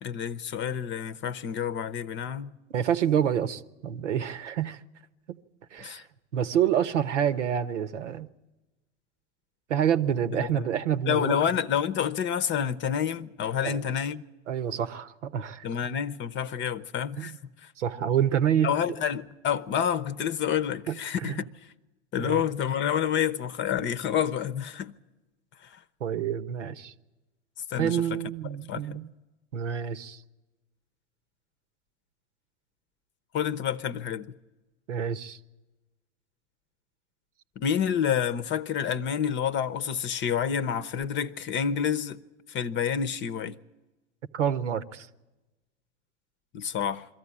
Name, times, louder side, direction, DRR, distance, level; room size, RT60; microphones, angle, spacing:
voice 1, 0.0-2.6 5.8-6.0 10.3-10.7 11.1-14.2 15.6-17.3 17.6-17.7 18.6-21.5 22.1-24.9 25.6-25.8 27.7-28.2 28.7-29.0 33.3-34.3 37.6-42.2 42.5-43.6 46.5-47.1, left 8 dB, 30° left, 0.8 m, -28 dB
voice 2, 2.7-4.8 5.3-5.4 5.7-6.0 6.3-8.3 9.7-11.5 13.6-13.8 14.5-15.7 17.2-17.4 17.8-18.8 20.9-21.4 22.2-22.4 26.0-26.9 27.8-29.1 29.5-30.2 34.9-35.4 44.3-45.1, right 9 dB, 80° right, 1.0 m, -28 dB
22.5 x 14.0 x 9.8 m
hypercardioid pair, 95°, 36 cm